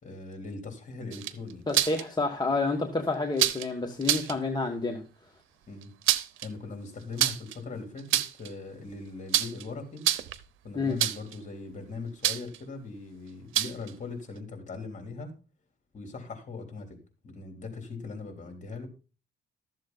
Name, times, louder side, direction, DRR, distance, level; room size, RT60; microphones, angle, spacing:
voice 1, 0.0-1.6 5.7-5.9 6.4-10.1 10.6-15.3 15.9-17.0 17.2-18.9, left 3 dB, 40° left, 3.4 m, -40 dB
sound 1, 1.1-2.0 3.4-3.7 4.0-4.3 5.8-6.5 7.2-7.6 8.0-8.5 9.3-9.6 10.0-10.4 11.0-11.3 12.2-12.6 13.5-13.9, right 13 dB, 85° right, 0.8 m, -27 dB
voice 2, 1.7-5.0 10.7-11.0, left 3 dB, 20° left, 1.4 m, -29 dB
13.0 x 7.4 x 4.0 m
cardioid pair, 90°, 20 cm